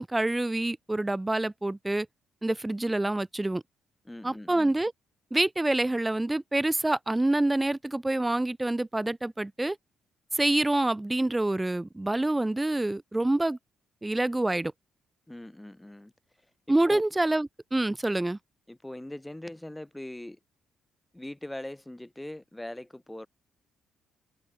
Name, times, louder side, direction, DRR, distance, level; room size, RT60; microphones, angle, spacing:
voice 1, 0.0-2.1 2.4-3.6 4.2-4.9 5.3-9.8 10.3-13.6 14.0-14.7 16.7-18.4, right 2 dB, 10° right, 0.6 m, -27 dB
voice 2, 4.1-4.8 15.3-16.1 16.8-17.0 18.7-20.4 21.1-23.3, left 1 dB, 10° left, 3.3 m, -41 dB
cardioid pair, 90°, 0 cm